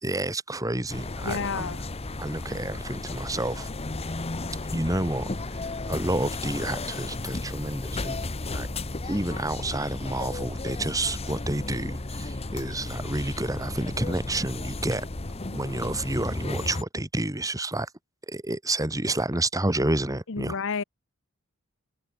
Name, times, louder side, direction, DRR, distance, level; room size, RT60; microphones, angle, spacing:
voice 1, 0.0-1.9 2.2-3.7 4.7-8.2 8.5-8.7 9.1-15.0 15.5-17.9 18.3-20.6, right 1 dB, 15° right, 2.6 m, -29 dB
sound 1, 0.9-16.8, left 2 dB, 25° left, 1.0 m, -34 dB
voice 2, 1.2-1.9 20.3-20.8, left 5 dB, 60° left, 0.9 m, -30 dB
head